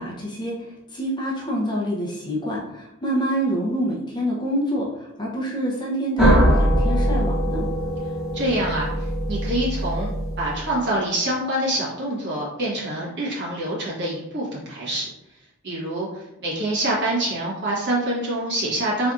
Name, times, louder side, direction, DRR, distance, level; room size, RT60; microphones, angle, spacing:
voice 1, 0.0-7.7, equal, 20° left, -3 dB, 0.7 m, -27 dB
sound 1, 6.2-10.9, equal, 5° right, 1.0 m, -22 dB
voice 2, 8.3-10.1 10.4-15.0 15.6-19.1, right 1 dB, 55° right, -5 dB, 1.4 m, -26 dB
4.3 x 3.4 x 2.5 m, 0.85 s
head